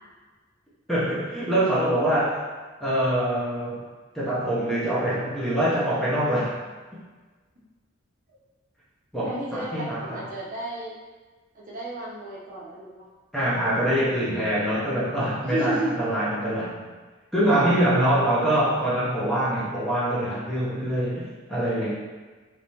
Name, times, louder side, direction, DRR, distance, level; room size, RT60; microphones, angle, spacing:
voice 1, 0.9-2.4 2.8-3.9 4.1-6.6 9.1-10.3 13.3-16.8 17.3-21.9, right 1 dB, ahead, -9 dB, 0.7 m, -24 dB
voice 2, 9.2-10.9 11.5-13.1 15.4-16.1, right 1 dB, 40° right, -6 dB, 0.8 m, -32 dB
3.2 x 3.2 x 2.8 m, 1.4 s
head